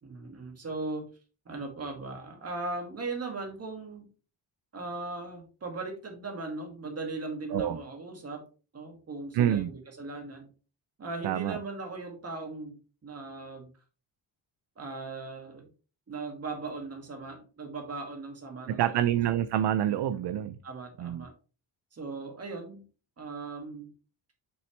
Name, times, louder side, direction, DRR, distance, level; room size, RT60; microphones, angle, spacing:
voice 1, 0.0-1.1 1.5-4.1 4.7-8.4 8.7-10.5 11.0-13.7 14.8-15.7 16.1-19.0 19.9-20.3 20.6-21.3 21.9-22.8 23.2-23.9, right 3 dB, 30° right, 2.1 m, -38 dB
voice 2, 9.3-9.7 11.2-11.6 18.7-20.6 21.0-21.2, right 11 dB, 60° right, 0.5 m, -27 dB
6.2 x 6.0 x 3.2 m
cardioid pair, 145°, 46 cm